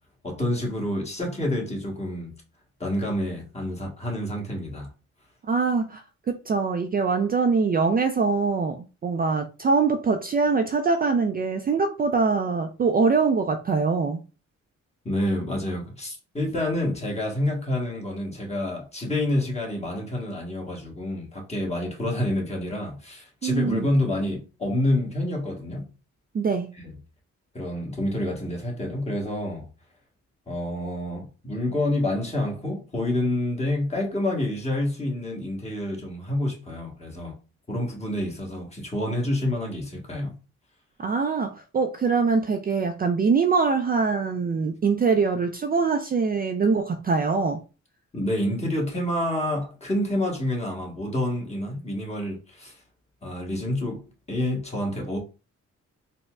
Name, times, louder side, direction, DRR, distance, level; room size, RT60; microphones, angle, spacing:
voice 1, 0.2-2.4 2.8-4.9 15.0-25.9 26.8-26.9 27.5-29.7 30.5-37.3 37.7-40.3 48.1-52.8 53.2-55.2, left 1 dB, 20° left, 1.3 m, -28 dB
voice 2, 5.5-8.8 9.0-14.2 23.4-23.9 26.3-26.7 41.0-47.6, right 4 dB, 30° right, 0.4 m, -23 dB
4.1 x 2.1 x 2.3 m
cardioid pair, 75°, 30 cm